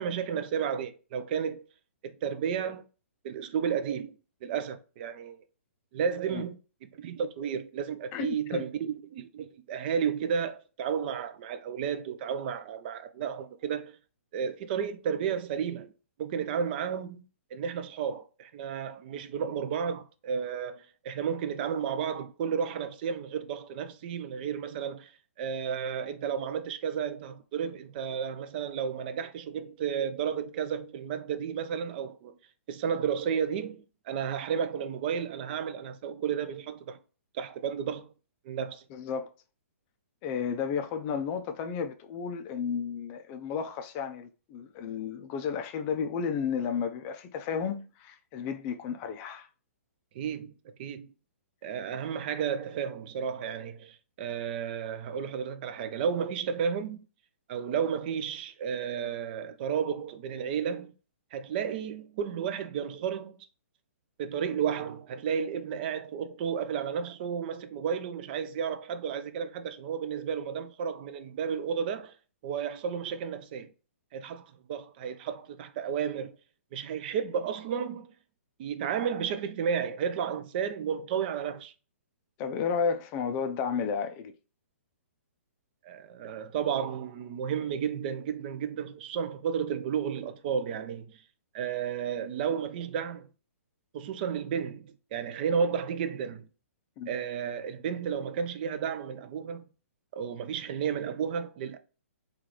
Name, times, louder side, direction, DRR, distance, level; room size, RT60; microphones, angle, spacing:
voice 1, 0.0-1.6 2.0-2.8 3.2-5.4 5.9-14.0 14.3-15.9 16.2-17.2 17.5-25.1 25.4-32.3 32.7-37.0 37.3-38.1 38.4-38.8 50.1-50.5 50.8-51.1 51.6-57.0 57.5-60.9 61.3-63.4 64.2-72.1 72.4-73.7 74.1-76.3 76.7-78.1 78.6-81.7 85.8-91.2 91.5-93.3 93.9-96.5 97.1-99.6 100.1-101.8, right 7 dB, 40° right, 0.4 m, -32 dB
voice 2, 8.1-8.7 38.9-39.3 40.2-49.5 82.4-84.3 97.0-97.1, left 6 dB, 30° left, 0.3 m, -32 dB
3.7 x 2.3 x 3.1 m
hypercardioid pair, 140°, 8 cm